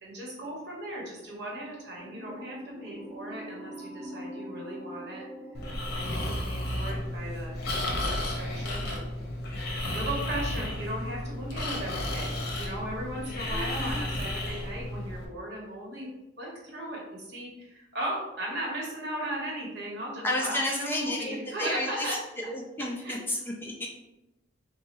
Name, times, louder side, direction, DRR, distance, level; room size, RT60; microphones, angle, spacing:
voice 1, 0.0-5.2 5.9-9.0 9.9-16.1 16.4-22.2 22.8-23.2, right 1 dB, 60° right, -3 dB, 1.1 m, -37 dB
sound 1, 2.0-7.2, equal, 20° right, 1.0 m, -44 dB
Breathing, 5.5-15.2, left 1 dB, 55° left, 0.7 m, -33 dB
voice 2, 13.5-14.0 20.2-22.2 22.5-23.9, left 1 dB, 10° left, 0 dB, 0.3 m, -32 dB
4.1 x 2.2 x 2.9 m, 0.96 s
head